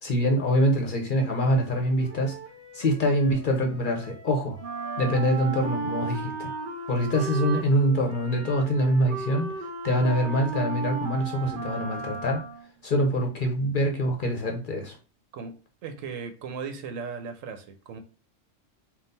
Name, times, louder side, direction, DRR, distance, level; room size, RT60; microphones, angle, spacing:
voice 1, 0.0-2.4 2.7-4.6 5.0-6.5 6.9-9.5 9.8-12.4 12.8-15.0, equal, 50° left, 0.8 m, -24 dB
Wind instrument woodwind instrument, 1.1-7.3, right 2 dB, 20° right, 1.1 m, -48 dB
Wind instrument woodwind instrument 2, 4.6-12.7, right 4 dB, 50° right, 0.7 m, -34 dB
voice 2, 15.8-18.0, right 5 dB, 90° right, 1.1 m, -37 dB
3.8 x 2.4 x 3.9 m
omnidirectional pair, 1.3 m